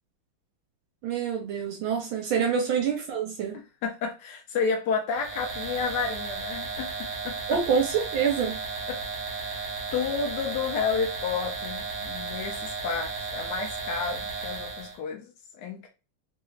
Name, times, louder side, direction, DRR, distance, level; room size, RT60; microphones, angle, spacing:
voice 1, 1.0-3.6 7.5-8.6, right 7 dB, 75° right, 3 dB, 1.4 m, -26 dB
voice 2, 3.5-7.6 8.9-15.9, left 5 dB, 80° left, 3 dB, 0.9 m, -31 dB
sound 1, 5.1-15.0, right 4 dB, 55° right, 1.6 m, -34 dB
3.7 x 2.4 x 3.1 m, 0.32 s
omnidirectional pair, 2.4 m